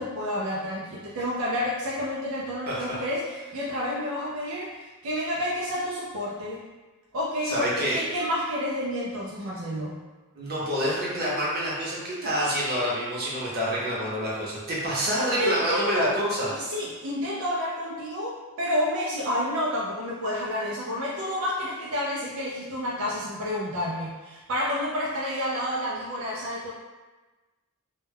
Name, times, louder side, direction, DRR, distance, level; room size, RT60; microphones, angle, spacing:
voice 1, 0.0-6.6 7.1-9.9 15.4-16.2 16.5-26.7, left 1 dB, 65° right, -5 dB, 0.4 m, -29 dB
voice 2, 2.7-3.0 7.4-8.0 10.4-16.5, equal, 45° right, -6 dB, 0.8 m, -27 dB
2.2 x 2.2 x 3.2 m, 1.2 s
head